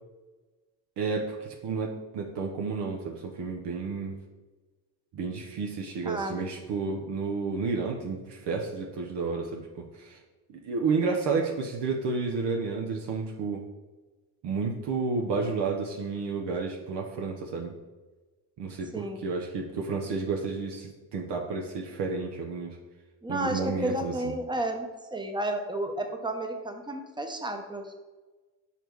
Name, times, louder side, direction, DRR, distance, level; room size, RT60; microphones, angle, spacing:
voice 1, 1.0-4.2 5.1-10.2 10.5-13.6 14.4-17.7 18.6-22.8 23.3-24.4, right 4 dB, 60° right, 1 dB, 0.9 m, -31 dB
voice 2, 6.0-6.4 18.9-19.2 23.2-28.0, right 1 dB, 10° right, 5 dB, 0.9 m, -32 dB
5.3 x 4.2 x 4.6 m, 1.2 s
supercardioid pair, 65°, 46 cm